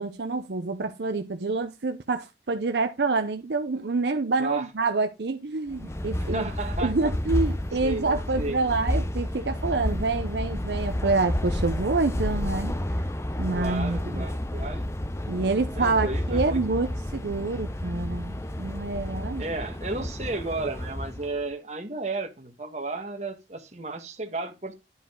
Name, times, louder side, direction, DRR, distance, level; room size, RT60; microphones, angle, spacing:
voice 1, 0.0-6.5 6.8-12.7 13.4-14.2 15.3-19.4, right 3 dB, 70° right, 0.7 m, -27 dB
sound 1, 5.7-21.4, left 1 dB, 15° left, 0.6 m, -30 dB
voice 2, 6.2-7.1 7.8-8.1 8.4-8.6 13.5-14.9 15.7-17.0 19.4-24.8, right 3 dB, 40° right, 1.5 m, -33 dB
11.0 x 4.9 x 3.8 m
head